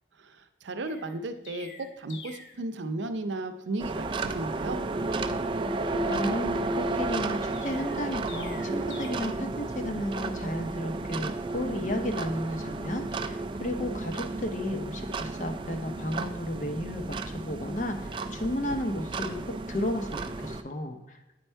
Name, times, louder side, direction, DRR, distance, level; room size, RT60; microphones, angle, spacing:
voice 1, 0.2-4.8, right 2 dB, 85° right, 8 dB, 0.6 m, -35 dB
Chirp tweet, 0.8-2.6 7.5-9.1, left 4 dB, 80° left, 0.8 m, -47 dB
sound 1, 3.8-20.6, right 2 dB, 25° right, 0.3 m, -33 dB
voice 2, 6.1-21.2, left 1 dB, 45° left, 6 dB, 0.7 m, -33 dB
8.5 x 4.4 x 4.5 m, 0.96 s
head